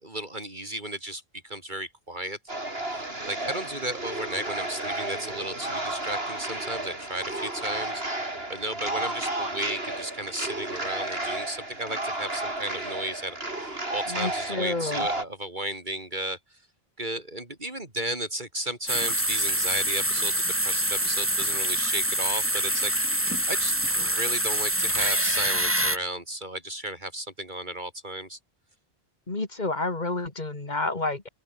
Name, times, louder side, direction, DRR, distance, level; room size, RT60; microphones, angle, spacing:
voice 1, 0.0-2.4 2.9-8.0 8.5-16.6 17.0-28.4, right 1 dB, 50° right, 4.2 m, -34 dB
sound 1, 2.5-15.2, right 2 dB, 70° right, 5.7 m, -32 dB
voice 2, 14.1-15.1 29.3-31.3, left 2 dB, 45° left, 2.7 m, -29 dB
sound 2, 18.9-26.0, right 1 dB, 10° right, 2.8 m, -25 dB
open air
omnidirectional pair, 1.0 m